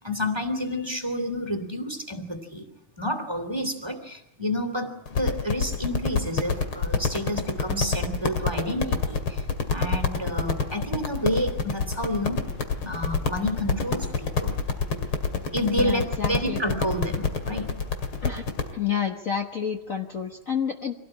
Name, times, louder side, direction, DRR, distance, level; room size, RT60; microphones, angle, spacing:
voice 1, 0.0-2.7 3.0-12.4 12.8-14.6 15.5-17.8, equal, 10° right, 6 dB, 2.8 m, -29 dB
sound 1, 5.1-18.7, left 5 dB, 75° left, 3.2 m, -27 dB
voice 2, 15.8-16.6 18.2-18.4 18.7-20.9, left 8 dB, 40° left, 3 dB, 1.6 m, -29 dB
25.5 x 18.0 x 8.8 m, 0.91 s
omnidirectional pair, 2.3 m